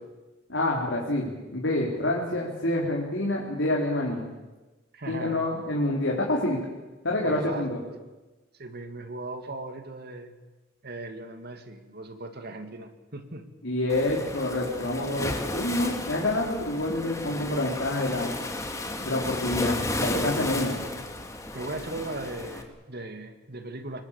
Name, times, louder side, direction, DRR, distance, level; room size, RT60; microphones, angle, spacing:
voice 1, 0.5-4.3 5.1-6.6 7.0-7.8 13.6-18.3 19.0-20.8, left 1 dB, 75° left, -3 dB, 3.9 m, -27 dB
voice 2, 4.9-5.4 7.2-7.6 8.6-10.3 10.8-13.5 21.5-24.0, right 2 dB, 55° right, 7 dB, 2.5 m, -38 dB
Waves surf, 13.9-22.6, left 1 dB, 15° left, 2.5 m, -33 dB
27.0 x 22.0 x 7.4 m, 1.2 s
head